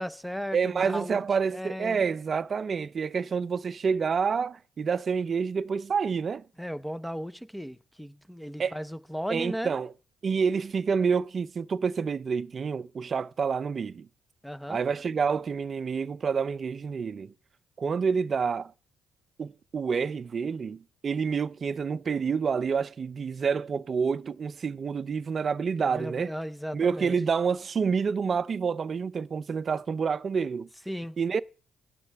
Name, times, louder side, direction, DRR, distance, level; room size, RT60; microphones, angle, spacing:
voice 1, 0.0-1.2 1.5-2.0 6.6-9.7 14.4-14.8 25.8-27.1 30.9-31.2, equal, ahead, 0.8 m, -36 dB
voice 2, 0.5-6.4 8.6-8.7 9.3-9.9 10.2-14.1 14.7-17.3 17.8-18.7 19.4-26.3 26.7-30.7 31.2-31.4, right 6 dB, 45° right, 0.5 m, -28 dB
16.5 x 10.5 x 3.5 m
cardioid pair, 90°, 0 cm